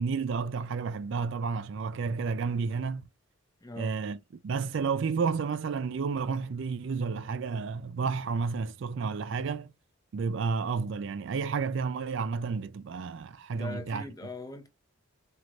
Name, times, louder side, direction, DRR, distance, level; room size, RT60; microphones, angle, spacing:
voice 1, 0.0-3.1 3.8-9.7 10.1-14.0, right 5 dB, 55° right, 0.3 m, -31 dB
voice 2, 3.6-3.9 13.5-14.7, left 2 dB, 15° left, 0.6 m, -41 dB
4.6 x 2.6 x 3.0 m
head